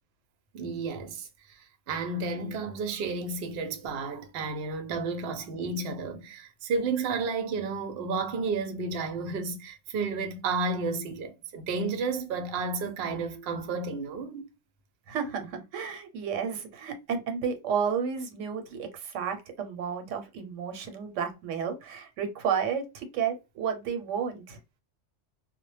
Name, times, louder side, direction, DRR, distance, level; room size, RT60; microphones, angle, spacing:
voice 1, 0.5-1.6 1.9-14.4, right 4 dB, 60° right, 0.7 m, -32 dB
voice 2, 15.1-24.6, right 7 dB, 85° right, 1.0 m, -32 dB
2.1 x 2.0 x 3.1 m
omnidirectional pair, 1.3 m